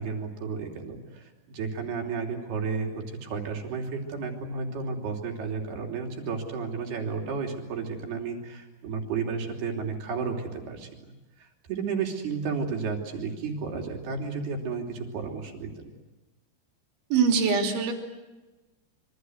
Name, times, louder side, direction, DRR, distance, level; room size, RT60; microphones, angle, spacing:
voice 1, 0.0-11.1 11.4-15.9, right 5 dB, 60° right, 1 dB, 5.0 m, -32 dB
voice 2, 17.1-17.9, right 5 dB, 85° right, 3 dB, 5.6 m, -23 dB
27.5 x 25.0 x 8.0 m, 1.1 s
omnidirectional pair, 5.2 m